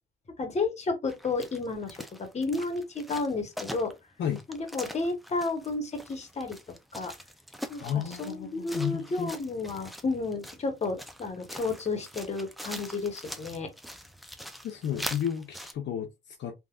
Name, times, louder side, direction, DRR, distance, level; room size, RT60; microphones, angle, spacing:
voice 1, 0.4-3.9 4.5-6.6 6.9-7.1 7.7-13.7, left 3 dB, 35° left, 1.1 m, -32 dB
sound 1, 1.1-15.7, equal, ahead, 0.5 m, -43 dB
voice 2, 7.8-9.3 14.6-16.5, left 9 dB, 65° left, 0.6 m, -32 dB
3.4 x 2.5 x 2.4 m
cardioid pair, 90°, 20 cm